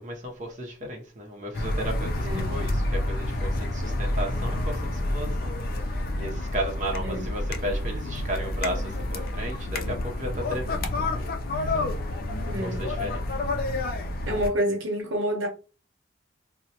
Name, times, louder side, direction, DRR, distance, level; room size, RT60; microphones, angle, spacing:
voice 1, 0.0-11.4 11.7-11.8 12.6-13.3 13.8-13.9, right 1 dB, 40° right, 0.7 m, -35 dB
sound 1, 1.5-14.5, left 1 dB, 50° left, 0.4 m, -29 dB
voice 2, 2.2-2.6 7.0-7.3 12.4-12.9 14.3-15.5, equal, 85° right, 0.8 m, -28 dB
2.9 x 2.1 x 2.8 m
head